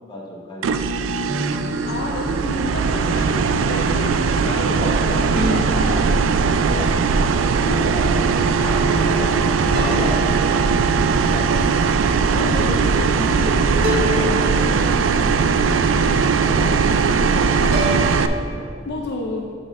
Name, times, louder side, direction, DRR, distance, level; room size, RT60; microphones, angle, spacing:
voice 1, 0.1-1.2 4.6-5.4 6.4-6.9 7.5-9.2 9.6-10.6 11.1-12.0 14.0-18.7 19.4-19.5, left 1 dB, 25° left, -3 dB, 1.2 m, -34 dB
sound 1, 0.6-18.3, right 5 dB, 85° right, 0.3 m, -19 dB
sound 2, 1.3-2.9 5.3-7.0 9.7-11.2 13.8-15.4 17.7-18.6, left 1 dB, 50° right, 1.0 m, -29 dB
voice 2, 1.9-6.1 7.6-7.8 8.6-9.4 9.7-10.1 12.3-14.4 18.8-19.5, left 2 dB, 60° left, 0 dB, 0.5 m, -29 dB
11.0 x 4.2 x 3.7 m, 2.1 s
head